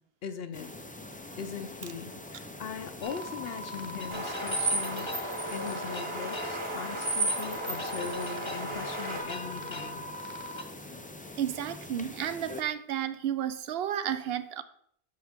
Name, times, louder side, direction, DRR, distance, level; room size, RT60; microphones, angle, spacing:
voice 1, 0.2-0.7 1.4-5.1 5.5-10.1, left 6 dB, 70° left, 0.9 m, -40 dB
sound 1, 0.5-12.6, left 2 dB, 15° left, 0.3 m, -44 dB
sound 2, 3.0-10.6, left 1 dB, 30° left, 0.9 m, -40 dB
sound 3, 4.1-9.2, right 2 dB, 30° right, 1.3 m, -33 dB
voice 2, 11.4-14.6, right 10 dB, 75° right, 0.8 m, -32 dB
11.5 x 4.6 x 3.6 m
omnidirectional pair, 1.1 m